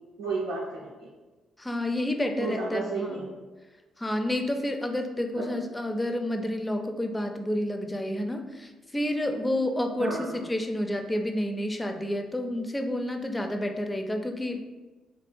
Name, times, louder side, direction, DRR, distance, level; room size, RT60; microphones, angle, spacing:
voice 1, 0.2-1.1 2.4-3.3 5.4-5.6 10.0-10.5, right 3 dB, 80° right, -7 dB, 0.5 m, -32 dB
voice 2, 1.6-3.1 4.0-14.6, left 1 dB, 15° left, 5 dB, 0.5 m, -29 dB
3.1 x 2.6 x 4.4 m, 1.2 s
hypercardioid pair, 45°, 0 cm